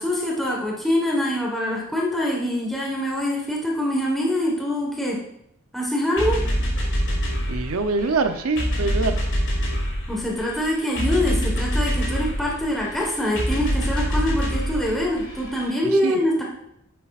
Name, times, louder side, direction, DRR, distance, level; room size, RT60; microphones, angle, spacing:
voice 1, 0.0-5.2 5.7-6.4 10.1-16.4, left 1 dB, ahead, -3 dB, 1.3 m, -24 dB
sound 1, 6.2-15.7, equal, 60° left, 2.7 m, -26 dB
voice 2, 7.5-9.2 15.8-16.2, right 3 dB, 70° right, 9 dB, 0.7 m, -24 dB
10.0 x 7.6 x 2.4 m, 0.78 s
head